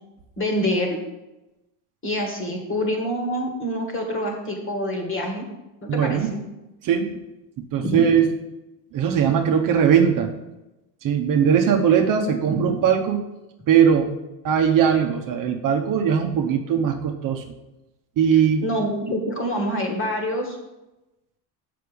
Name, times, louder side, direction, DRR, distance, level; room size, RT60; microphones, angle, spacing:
voice 1, 0.4-1.0 2.0-5.4 5.8-6.4 7.8-8.0 12.5-12.6 18.3-20.6, equal, 25° left, 2 dB, 1.9 m, -26 dB
voice 2, 5.9-6.3 6.8-7.2 7.7-8.3 8.9-10.3 11.0-13.2 13.7-14.1 14.4-17.4 18.2-18.6, right 8 dB, 45° right, 3 dB, 0.9 m, -19 dB
6.6 x 5.9 x 5.1 m, 0.98 s
cardioid pair, 125°, 46 cm